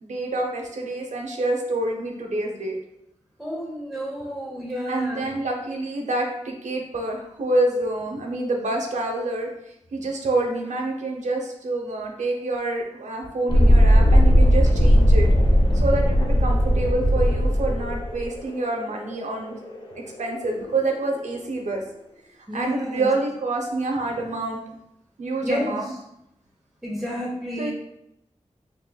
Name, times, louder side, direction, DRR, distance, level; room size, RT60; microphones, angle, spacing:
voice 1, 0.0-2.8 4.9-9.5 9.9-15.3 15.7-19.5 19.9-21.8 22.5-24.6 25.2-25.8 27.6-27.7, right 2 dB, 85° right, 1 dB, 0.6 m, -27 dB
voice 2, 3.4-5.3 15.4-16.0 22.5-23.1 25.4-25.9 26.8-27.7, equal, ahead, -4 dB, 0.8 m, -31 dB
Thunderstorm, 13.5-20.9, equal, 40° left, 0.6 m, -18 dB
4.8 x 2.9 x 2.2 m, 0.81 s
wide cardioid pair, 85°, 12 cm